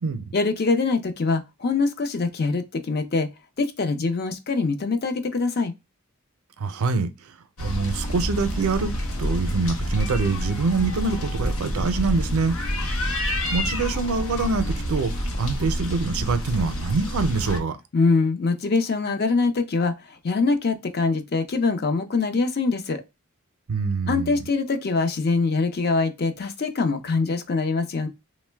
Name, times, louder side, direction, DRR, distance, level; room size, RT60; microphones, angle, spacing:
voice 1, 0.3-3.3 3.6-5.7 17.9-23.0 24.1-28.1, left 4 dB, 45° left, 0.5 m, -23 dB
voice 2, 6.6-7.3 7.6-8.9 9.2-12.6 13.1-13.2 13.5-17.8 23.7-24.4, right 4 dB, 85° right, 0.5 m, -25 dB
sound 1, 7.6-17.6, equal, 85° left, 0.7 m, -28 dB
3.0 x 2.1 x 3.3 m
head